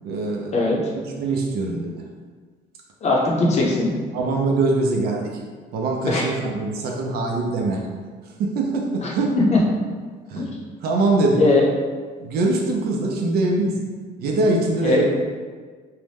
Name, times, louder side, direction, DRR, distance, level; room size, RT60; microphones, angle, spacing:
voice 1, 0.0-0.6 0.9-2.0 4.1-5.4 5.7-7.9 8.2-9.4 10.3-10.5 10.8-11.4 12.2-13.8 14.2-15.0, right 2 dB, 70° right, 0 dB, 0.5 m, -23 dB
voice 2, 0.5-0.9 3.0-3.9 6.1-6.2 9.0-9.1 9.5-9.6 10.4-10.5 11.4-11.6 14.8-15.0, left 2 dB, 40° left, -3 dB, 0.7 m, -19 dB
2.7 x 2.1 x 3.3 m, 1.5 s
cardioid pair, 110°, 17 cm